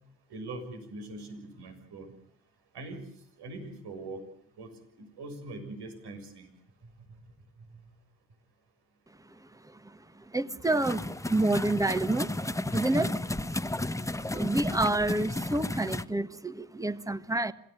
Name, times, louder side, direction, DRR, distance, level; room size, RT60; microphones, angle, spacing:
voice 1, 0.3-2.1 2.7-3.0 3.4-4.2 4.6-4.7 5.0-6.5, right 2 dB, 80° right, 6 dB, 6.9 m, -42 dB
voice 2, 9.2-12.3 12.7-17.5, right 2 dB, 10° right, 13 dB, 1.5 m, -30 dB
sound 1, 10.6-16.0, left 1 dB, 10° left, 1.1 m, -33 dB
27.0 x 17.5 x 9.0 m, 0.66 s
cardioid pair, 75°, 40 cm